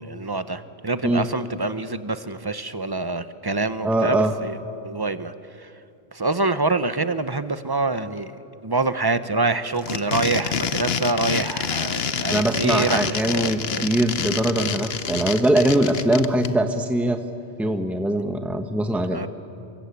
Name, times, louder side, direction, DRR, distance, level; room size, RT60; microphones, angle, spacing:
voice 1, 0.0-4.6 4.8-5.3 5.6-5.7 6.1-8.3 8.6-13.8 19.1-19.3, right 3 dB, 25° right, 12 dB, 0.8 m, -26 dB
voice 2, 3.8-4.3 12.3-17.2 17.6-19.2, right 1 dB, ahead, 6 dB, 1.2 m, -22 dB
sound 1, 9.7-16.5, left 6 dB, 70° left, 1.2 m, -27 dB
28.0 x 23.5 x 8.4 m, 2.6 s
omnidirectional pair, 1.1 m